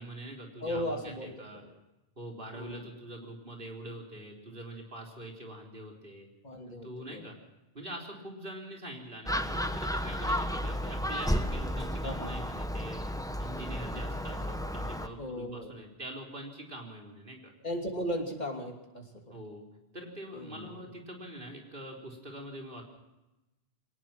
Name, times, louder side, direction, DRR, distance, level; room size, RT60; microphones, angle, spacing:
voice 1, 0.0-1.6 2.2-6.3 6.7-7.4 7.7-13.0 13.4-17.5 19.3-19.6 19.9-22.8, right 1 dB, 60° right, 2 dB, 4.2 m, -44 dB
voice 2, 0.6-1.7 2.5-2.9 6.4-7.3 12.0-12.4 15.2-15.7 17.6-19.3 20.3-20.9, equal, 45° left, 2 dB, 3.0 m, -37 dB
Gull seagull, 9.3-15.1, equal, 5° left, 1.0 m, -33 dB
22.5 x 19.5 x 6.0 m, 0.98 s
omnidirectional pair, 1.0 m